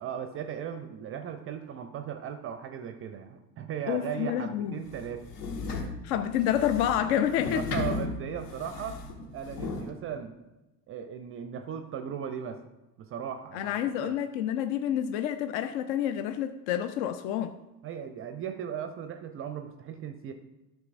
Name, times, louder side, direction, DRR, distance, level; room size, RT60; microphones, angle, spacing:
voice 1, 0.0-5.2 5.8-5.9 7.5-10.3 10.9-12.6 13.0-14.2 17.8-20.3, right 8 dB, 25° right, 8 dB, 0.5 m, -37 dB
voice 2, 3.9-4.8 6.0-7.7 13.5-17.5, left 10 dB, 45° left, 10 dB, 0.5 m, -28 dB
sound 1, 4.9-9.9, left 3 dB, 60° left, 1.5 m, -35 dB
12.5 x 7.3 x 2.5 m, 1.0 s
figure-of-eight pair, 65°, 50 cm